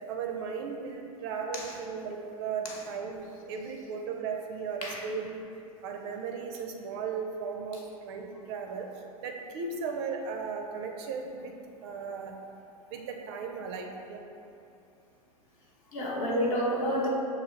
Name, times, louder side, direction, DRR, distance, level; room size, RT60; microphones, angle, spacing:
voice 1, 0.1-5.5 5.8-8.9 9.2-11.5 11.8-12.3 12.9-14.2, right 5 dB, 45° right, 2 dB, 0.4 m, -36 dB
voice 2, 15.9-17.1, equal, 40° left, -2 dB, 0.8 m, -29 dB
6.4 x 2.4 x 3.1 m, 2.7 s
figure-of-eight pair, 95°, 19 cm